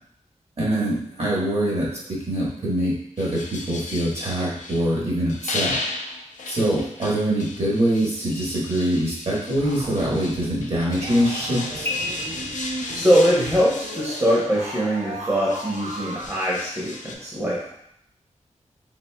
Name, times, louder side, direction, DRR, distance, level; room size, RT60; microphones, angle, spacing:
voice 1, 0.6-5.8 6.5-11.9, right 1 dB, 55° right, -5 dB, 1.3 m, -24 dB
sound 1, 3.2-4.9 5.3-15.0 15.5-17.2, left 3 dB, 85° left, 0.5 m, -35 dB
sound 2, 8.3-9.5 11.8-13.3, left 2 dB, 20° left, 0.5 m, -34 dB
sound 3, 9.6-16.3, right 2 dB, 75° right, 0.6 m, -36 dB
voice 2, 12.9-17.7, equal, 20° right, -6 dB, 0.8 m, -22 dB
4.2 x 3.4 x 2.2 m, 0.73 s
wide cardioid pair, 125°, 13 cm